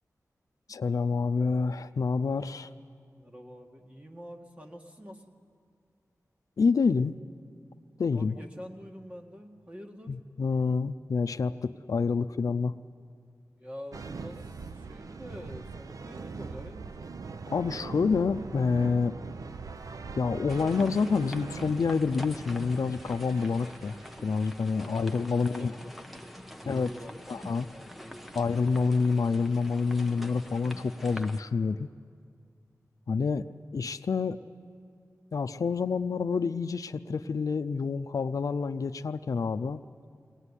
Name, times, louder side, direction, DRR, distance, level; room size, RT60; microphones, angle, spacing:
voice 1, 0.7-2.7 6.6-7.1 8.0-8.4 10.1-12.7 17.5-19.1 20.2-23.9 24.2-25.7 26.7-26.9 27.3-27.7 28.4-31.9 33.1-33.4 33.7-34.4 35.3-39.8, left 4 dB, 75° left, 10 dB, 0.5 m, -28 dB
voice 2, 2.4-2.7 3.2-5.2 8.1-10.2 13.6-14.5 14.8-17.0 24.7-24.9 25.2-28.6 33.2-33.5, equal, 25° right, 2 dB, 1.9 m, -46 dB
sound 1, 13.9-24.6, right 4 dB, 75° right, 0.7 m, -42 dB
sound 2, 20.5-31.4, equal, ahead, 0.9 m, -46 dB
21.0 x 18.5 x 9.9 m, 2.2 s
wide cardioid pair, 95°, 6 cm